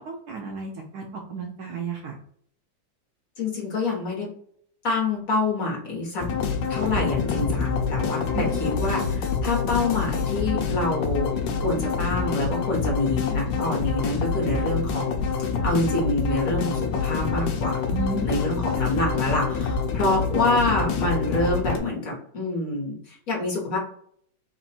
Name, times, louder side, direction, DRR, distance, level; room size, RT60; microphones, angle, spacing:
voice 1, 0.0-2.2 8.3-8.6 17.9-18.3, right 4 dB, 70° right, 2 dB, 1.0 m, -32 dB
voice 2, 3.4-4.3 4.8-6.2 6.7-11.3 11.6-15.1 15.4-17.8 18.2-23.8, left 2 dB, 50° left, -2 dB, 1.6 m, -26 dB
sound 1, 6.2-21.8, left 5 dB, 75° left, 1.4 m, -26 dB
4.1 x 2.6 x 4.2 m, 0.63 s
omnidirectional pair, 2.1 m